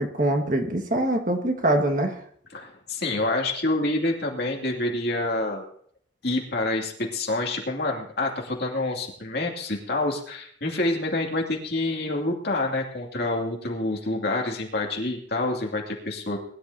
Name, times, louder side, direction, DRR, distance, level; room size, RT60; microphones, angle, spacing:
voice 1, 0.0-2.2, right 1 dB, 45° right, 3 dB, 1.7 m, -24 dB
voice 2, 2.5-5.6 6.2-16.4, left 2 dB, 55° left, 1 dB, 2.6 m, -27 dB
21.0 x 11.5 x 2.8 m, 0.62 s
head